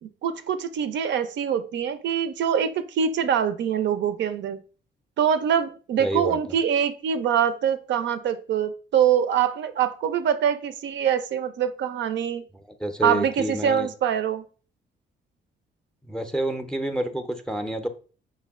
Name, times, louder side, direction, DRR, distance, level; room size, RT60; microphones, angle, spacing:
voice 1, 0.0-4.6 5.2-12.4 13.0-14.4, right 8 dB, 65° right, 0.4 m, -24 dB
voice 2, 6.0-6.4 12.5-13.9 16.0-17.9, right 1 dB, 5° left, 0.5 m, -28 dB
5.3 x 2.2 x 3.4 m
cardioid pair, 90°, 20 cm